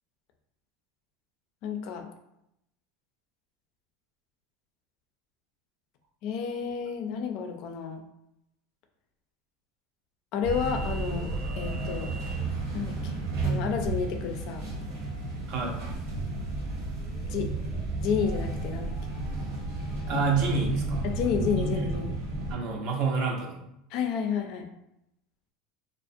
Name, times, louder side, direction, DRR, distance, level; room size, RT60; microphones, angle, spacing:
voice 1, 1.6-2.1 6.2-8.0 10.3-11.3 11.6-12.2 12.7-13.1 13.4-14.6 17.3-17.5 17.7-18.9 21.0-22.1 23.9-24.6, left 7 dB, 60° left, 5 dB, 0.4 m, -31 dB
sound 1, 10.4-22.5, right 2 dB, 80° right, 0.9 m, -32 dB
voice 2, 15.5-15.8 20.1-21.2 21.6-22.0 22.5-23.7, right 4 dB, 55° right, 1 dB, 0.5 m, -29 dB
2.4 x 2.0 x 2.6 m, 0.82 s
supercardioid pair, 130°, 0 cm